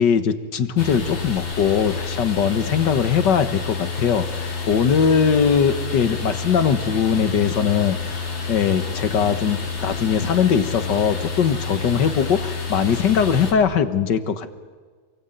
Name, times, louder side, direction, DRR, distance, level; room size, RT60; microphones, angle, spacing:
voice 1, 0.0-8.2 8.5-14.5, left 7 dB, 65° left, 11 dB, 2.0 m, -20 dB
sound 1, 0.8-13.5, left 4 dB, 85° left, 3.8 m, -29 dB
28.5 x 22.5 x 9.3 m, 1.5 s
omnidirectional pair, 2.1 m